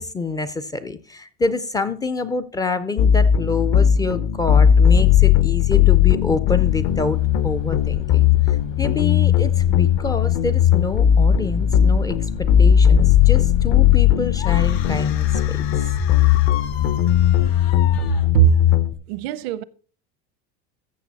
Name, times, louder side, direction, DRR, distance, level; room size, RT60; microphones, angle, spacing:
voice 1, 0.0-8.3 8.8-15.7, left 3 dB, 15° left, 0.4 m, -27 dB
sound 1, 3.0-18.9, left 9 dB, 50° left, 0.8 m, -17 dB
sound 2, 6.6-18.3, left 3 dB, 70° left, 3.1 m, -33 dB
sound 3, 14.4-18.8, left 11 dB, 90° left, 1.2 m, -36 dB
voice 2, 18.1-18.6 19.1-19.6, right 15 dB, 80° right, 0.7 m, -19 dB
15.0 x 6.5 x 4.0 m
cardioid pair, 150°, 30 cm